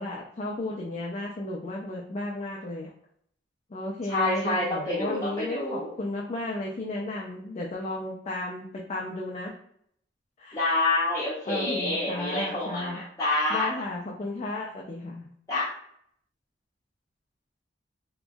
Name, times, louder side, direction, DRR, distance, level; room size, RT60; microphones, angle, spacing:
voice 1, 0.0-2.9 3.7-9.5 10.4-10.6 11.5-13.0 13.5-15.3, left 2 dB, 40° left, -2 dB, 0.4 m, -34 dB
voice 2, 4.1-5.9 10.5-13.7 15.5-15.7, left 2 dB, 20° left, -10 dB, 0.7 m, -27 dB
2.9 x 2.6 x 2.2 m, 0.67 s
head